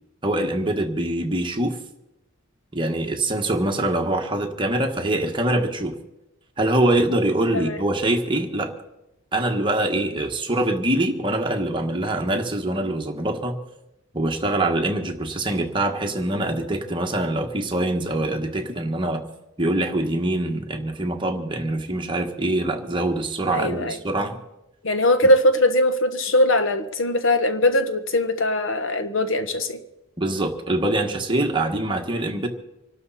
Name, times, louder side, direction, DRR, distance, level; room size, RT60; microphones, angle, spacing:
voice 1, 0.2-1.8 2.7-5.9 6.6-8.7 9.3-13.6 14.1-19.2 19.6-24.4 30.2-32.5, right 1 dB, 25° right, 3 dB, 1.6 m, -24 dB
voice 2, 23.5-24.0 24.8-29.8, left 1 dB, 70° left, 9 dB, 1.3 m, -20 dB
26.0 x 12.5 x 4.3 m, 0.93 s
head